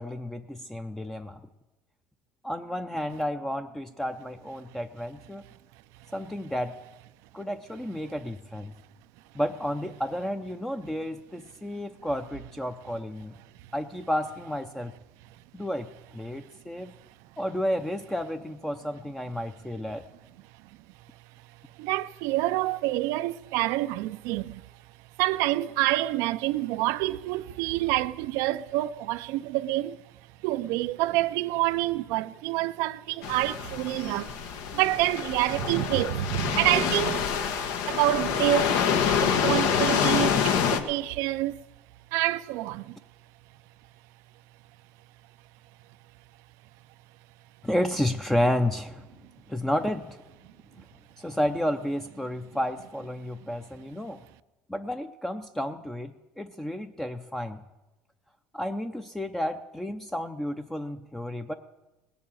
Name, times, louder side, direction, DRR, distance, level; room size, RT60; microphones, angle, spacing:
voice 1, 0.0-1.4 2.4-5.4 6.1-6.8 7.3-8.7 9.3-13.3 13.7-14.9 15.5-16.9 17.4-20.0 47.6-49.0 49.5-50.2 51.2-54.2 54.7-57.6 58.5-61.5, left 1 dB, 5° left, 0.6 m, -31 dB
voice 2, 21.8-24.7 25.2-30.0 30.4-37.5 37.9-38.9 39.2-41.6 42.1-43.0, right 16 dB, 75° right, 0.4 m, -27 dB
sound 1, 33.2-40.8, left 7 dB, 75° left, 1.2 m, -26 dB
17.5 x 7.1 x 8.9 m
supercardioid pair, 110°, 5 cm